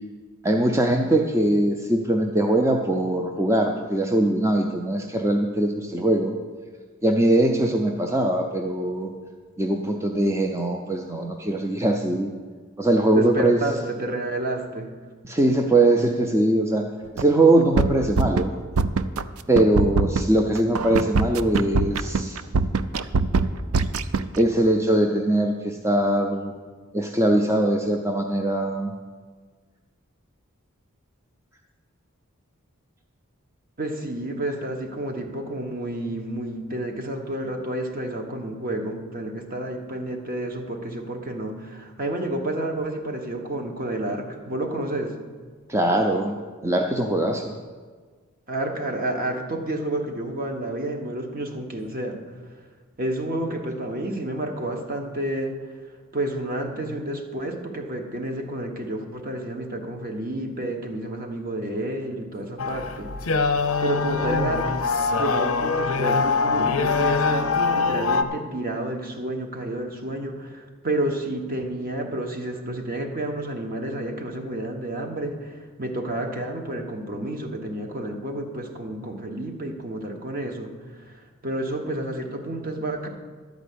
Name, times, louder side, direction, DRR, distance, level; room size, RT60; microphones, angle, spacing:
voice 1, 0.4-6.4 7.0-9.1 9.6-12.3 12.8-13.6 15.2-16.9 17.1-18.5 19.5-22.4 24.4-26.5 26.9-28.9 45.7-46.4 46.6-47.5, right 1 dB, 15° right, 2 dB, 0.5 m, -21 dB
voice 2, 13.1-14.9 33.8-45.1 48.5-52.2 53.0-55.5 56.1-63.4 63.8-83.1, right 1 dB, 45° right, 3 dB, 1.2 m, -30 dB
sound 1, 17.2-17.3 17.6-18.4 18.8-19.2 19.6-24.4, right 4 dB, 80° right, 0.5 m, -22 dB
sound 2, 62.6-68.2, left 4 dB, 85° left, 0.7 m, -23 dB
12.0 x 5.1 x 8.5 m, 1.5 s
head